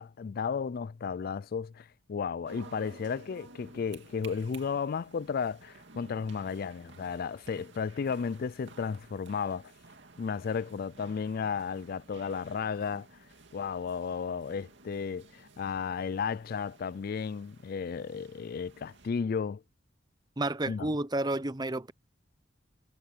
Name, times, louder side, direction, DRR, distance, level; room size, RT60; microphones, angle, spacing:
voice 1, 0.0-9.7 10.2-13.1 13.5-19.6 20.7-21.0, left 6 dB, 55° left, 0.4 m, -34 dB
sound 1, 2.4-19.1, right 3 dB, 70° right, 2.5 m, -54 dB
voice 2, 20.4-21.9, right 2 dB, 25° right, 0.8 m, -31 dB
head